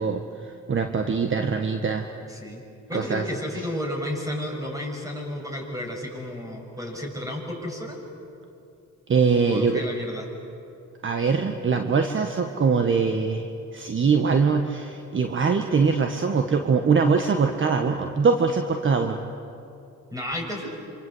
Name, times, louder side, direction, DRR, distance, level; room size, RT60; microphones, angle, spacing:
voice 1, 0.0-2.1 2.9-3.2 9.1-9.8 11.0-13.5 13.7-19.2, right 5 dB, 40° right, 5 dB, 1.6 m, -22 dB
voice 2, 2.3-2.6 2.9-8.0 9.5-10.3 20.1-20.7, left 1 dB, 10° right, 1 dB, 7.0 m, -32 dB
27.0 x 26.0 x 8.1 m, 2.6 s
cardioid pair, 90°, 30 cm